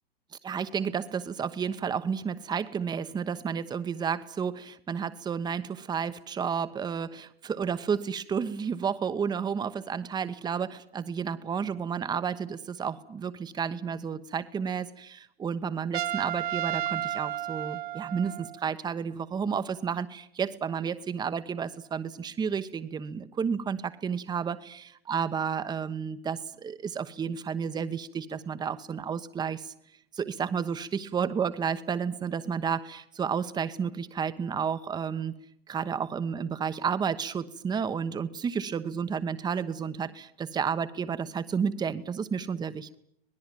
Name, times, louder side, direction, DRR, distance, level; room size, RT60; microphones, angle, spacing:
voice 1, 0.4-29.7 30.1-35.4 35.7-43.0, right 6 dB, 15° right, 12 dB, 1.1 m, -31 dB
Trumpet, 15.9-18.6, right 12 dB, 55° right, 0.9 m, -32 dB
25.5 x 19.5 x 9.1 m, 0.72 s
figure-of-eight pair, 105°, 30 cm